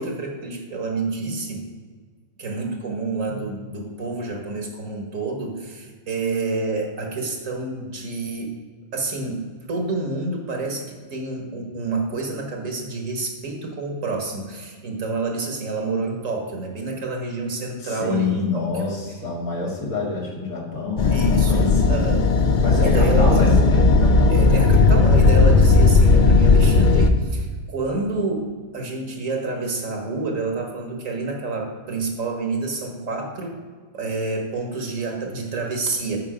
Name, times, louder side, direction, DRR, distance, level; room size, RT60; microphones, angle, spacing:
voice 1, 0.0-1.6 2.4-8.5 8.9-18.8 21.1-22.3 22.8-23.5 24.3-33.6 33.9-36.2, right 3 dB, 65° right, 1 dB, 1.8 m, -28 dB
voice 2, 17.8-22.1 22.6-24.3, left 4 dB, 75° left, -3 dB, 2.4 m, -27 dB
sound 1, 21.0-27.1, left 3 dB, 60° left, 0.5 m, -15 dB
8.8 x 5.3 x 5.0 m, 1.5 s
omnidirectional pair, 1.5 m